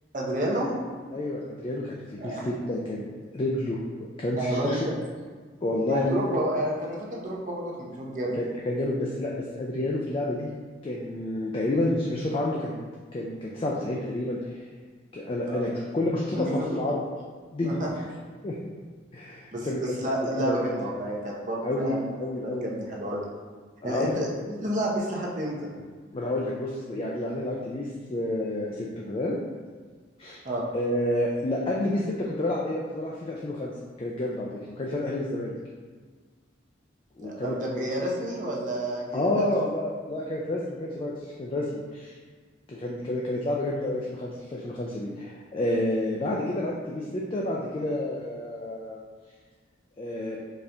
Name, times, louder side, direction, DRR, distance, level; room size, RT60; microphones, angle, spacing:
voice 1, 0.1-0.8 2.2-2.5 4.4-4.9 5.9-8.4 15.5-15.6 16.3-16.8 17.6-17.9 19.5-22.0 22.4-23.2 23.8-25.7 30.4-30.6 37.2-39.3, right 1 dB, 40° right, -3 dB, 0.6 m, -30 dB
voice 2, 1.1-3.1 3.3-4.8 5.6-6.4 8.4-10.5 10.8-12.8 13.1-14.6 15.1-17.0 17.5-18.2 18.4-18.7 19.1-19.8 20.4-20.6 21.6-22.7 23.8-24.2 26.1-29.4 30.2-30.4 30.7-35.6 37.2-37.6 39.1-42.2 42.7-49.0 50.0-50.4, left 1 dB, 30° left, -3 dB, 0.3 m, -29 dB
4.2 x 2.5 x 3.3 m, 1.5 s
head